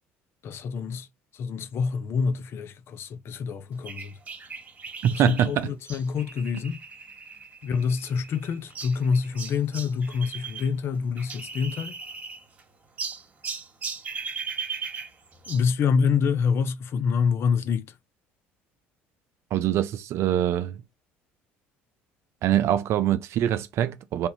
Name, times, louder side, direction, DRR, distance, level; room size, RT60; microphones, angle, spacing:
voice 1, 0.4-1.1 1.3-4.1 5.1-6.8 7.6-11.9 15.5-17.9, left 6 dB, 50° left, 0.6 m, -26 dB
sound 1, 3.9-10.7 10.9-12.6 13.0-15.7, right 5 dB, 30° right, 1.6 m, -38 dB
voice 2, 5.0-5.7 19.5-20.8 22.4-24.3, right 11 dB, 60° right, 0.5 m, -24 dB
3.5 x 2.7 x 4.0 m
supercardioid pair, 85°, 5 cm